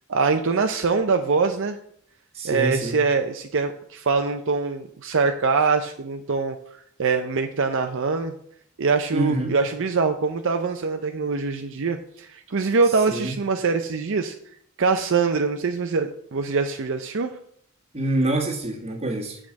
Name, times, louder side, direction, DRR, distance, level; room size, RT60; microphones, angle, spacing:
voice 1, 0.1-1.8 2.4-6.6 7.0-8.3 8.8-14.3 14.8-17.4, right 4 dB, 60° right, 6 dB, 0.6 m, -23 dB
voice 2, 2.3-3.0 9.1-9.6 13.1-13.3 17.9-19.4, right 1 dB, 30° right, 0 dB, 1.9 m, -26 dB
8.4 x 5.0 x 7.4 m, 0.66 s
head